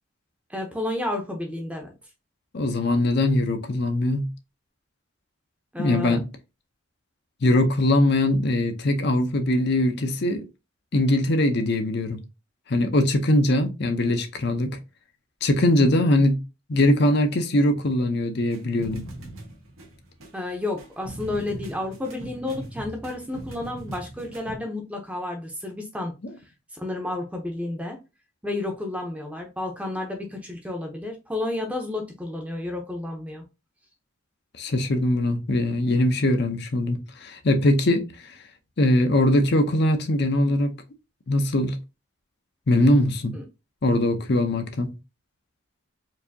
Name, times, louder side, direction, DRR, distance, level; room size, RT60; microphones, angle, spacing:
voice 1, 0.5-1.9 5.7-6.2 20.3-26.1 26.7-28.0 28.4-33.4 43.3-43.4, left 2 dB, 5° right, 0.7 m, -31 dB
voice 2, 2.5-4.3 5.8-6.3 7.4-10.4 10.9-12.2 12.7-14.8 15.4-16.4 16.7-19.0 34.6-38.4 38.8-40.7 41.3-41.8 42.7-43.3 43.8-44.9, left 1 dB, 55° left, 0.6 m, -21 dB
sound 1, 18.5-24.6, right 1 dB, 85° right, 1.4 m, -40 dB
4.6 x 2.7 x 2.7 m
head